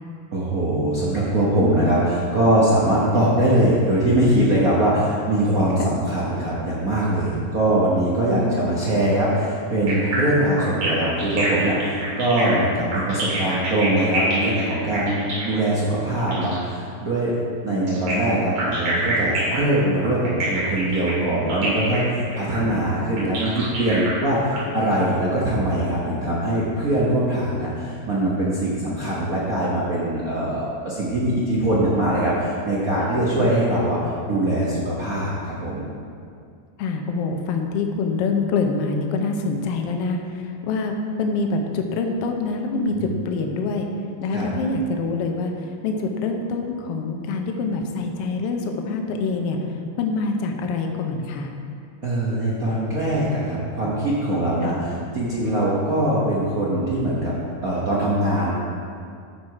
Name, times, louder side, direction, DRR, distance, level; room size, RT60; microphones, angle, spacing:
voice 1, 0.3-17.3 17.6-34.0 34.3-35.9 42.9-43.0 44.3-44.5 52.0-57.3 57.6-58.5, right 1 dB, 65° right, -7 dB, 0.8 m, -22 dB
voice 2, 8.3-8.6 17.7-18.4 33.4-33.6 36.8-43.9 44.2-45.5 45.8-49.6 50.0-51.5 54.6-54.8, left 3 dB, 70° left, 3 dB, 1.6 m, -25 dB
sound 1, 9.9-16.6 17.9-24.6, right 2 dB, 80° right, 3.7 m, -28 dB
13.5 x 4.7 x 4.8 m, 2.3 s
omnidirectional pair, 3.3 m